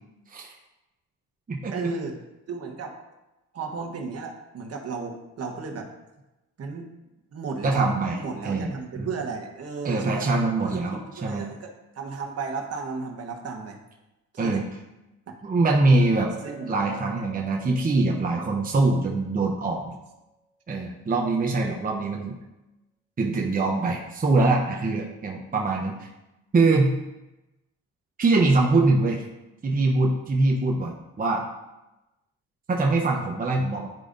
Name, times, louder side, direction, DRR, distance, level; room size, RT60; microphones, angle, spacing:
voice 1, 1.7-2.2 2.5-2.9 3.5-5.9 6.6-6.9 7.3-13.8 14.3-14.6 15.3-15.4 16.4-17.2, right 4 dB, 55° right, 2 dB, 1.3 m, -34 dB
voice 2, 7.6-8.2 8.4-8.7 9.0-9.1 9.8-11.5 14.4-14.6 15.4-16.3 16.7-19.9 20.7-22.4 23.2-26.1 26.5-26.9 28.2-29.2 29.6-31.4 32.7-33.9, right 3 dB, 30° right, -1 dB, 0.9 m, -23 dB
Chink clink, 15.9-20.2, right 1 dB, 30° left, 1.8 m, -49 dB
10.5 x 4.8 x 2.6 m, 1.0 s
cardioid pair, 90°, 30 cm